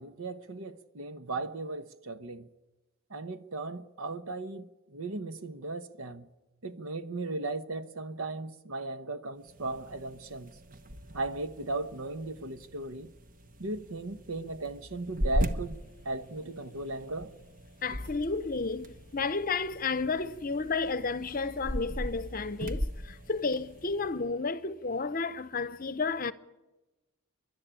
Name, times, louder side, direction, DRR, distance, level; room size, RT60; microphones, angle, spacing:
voice 1, 0.0-2.5 3.1-6.3 6.6-10.5 11.1-13.1 13.6-15.8 16.0-17.3, right 2 dB, 85° right, 1.1 m, -37 dB
sound 1, 9.4-24.2, equal, 40° right, 1.0 m, -39 dB
voice 2, 17.8-26.3, left 4 dB, 40° left, 0.7 m, -32 dB
29.0 x 11.5 x 9.0 m
head